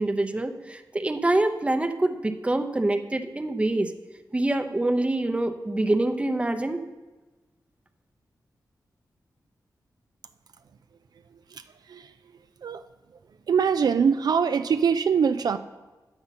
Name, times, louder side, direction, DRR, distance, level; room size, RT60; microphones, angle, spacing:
voice 1, 0.0-3.9 4.3-6.8, right 2 dB, 15° right, 6 dB, 0.6 m, -25 dB
voice 2, 11.3-12.1 12.6-12.8 13.5-15.6, right 6 dB, 65° right, 10 dB, 0.4 m, -24 dB
9.4 x 7.2 x 5.7 m, 1.2 s
wide cardioid pair, 110°, 7 cm